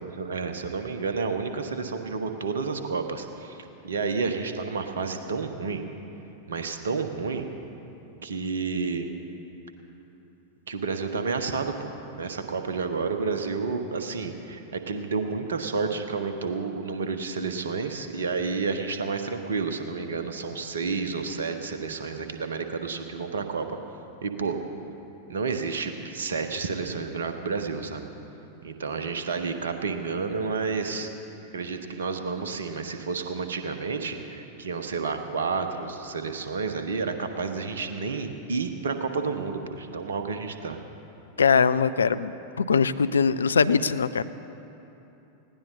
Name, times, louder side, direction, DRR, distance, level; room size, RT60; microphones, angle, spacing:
voice 1, 0.0-5.8 6.5-7.4 8.2-9.1 10.7-23.8 24.2-24.6 25.3-28.0 28.6-31.1 31.5-40.8, right 4 dB, 65° right, 7 dB, 1.3 m, -30 dB
voice 2, 41.4-42.3 42.6-44.2, left 5 dB, 70° left, 14 dB, 0.5 m, -21 dB
20.0 x 17.0 x 4.3 m, 3.0 s
figure-of-eight pair, 90°, 0 cm